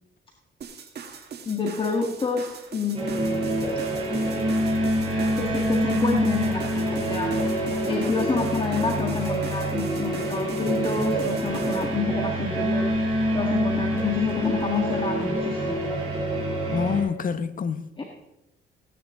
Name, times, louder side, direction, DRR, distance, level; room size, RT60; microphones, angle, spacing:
sound 1, 0.6-11.9, right 6 dB, 55° right, 1.7 m, -41 dB
voice 1, 1.5-3.5 5.4-7.4 7.9-12.9 13.3-15.8 18.0-18.1, left 4 dB, 25° left, 1.7 m, -28 dB
sound 2, 2.9-17.0, right 1 dB, 30° right, 5.1 m, -26 dB
voice 2, 16.7-18.0, left 6 dB, 45° left, 0.9 m, -27 dB
15.5 x 10.0 x 3.7 m
cardioid pair, 90°, 20 cm